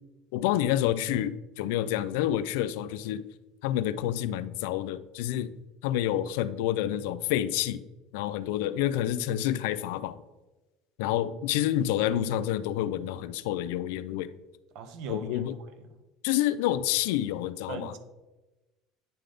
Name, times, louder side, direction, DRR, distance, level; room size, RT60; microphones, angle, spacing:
voice 1, 0.3-3.2 3.6-5.5 5.8-7.8 8.1-10.2 11.0-14.3 15.1-15.6 16.2-18.0, left 12 dB, 85° left, 15 dB, 0.3 m, -28 dB
voice 2, 14.7-15.9 17.7-18.0, right 4 dB, 65° right, 9 dB, 0.8 m, -40 dB
9.2 x 3.4 x 3.8 m, 1.1 s
supercardioid pair, 120°, 0 cm